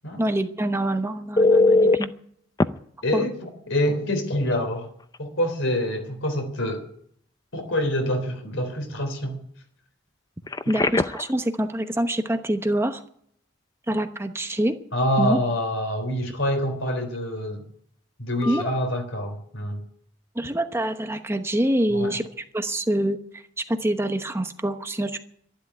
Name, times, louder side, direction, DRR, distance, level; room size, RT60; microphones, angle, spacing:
voice 1, 0.2-2.1 3.1-3.3 10.7-13.0 13.9-14.8 15.2-15.4 18.5-18.7 20.3-22.2 22.5-23.2 23.6-25.2, right 1 dB, 15° right, 1.0 m, -25 dB
Telephone, 1.4-2.0 2.6-2.7 4.5-4.6 5.0-5.2 10.5-11.3 18.4-18.6, left 2 dB, 20° left, 0.5 m, -20 dB
voice 2, 3.0-4.9 5.2-6.9 7.5-9.4 10.7-10.8 14.9-17.7 18.2-19.8 21.9-22.2, left 1 dB, 80° left, 3.7 m, -26 dB
12.5 x 11.5 x 9.9 m
head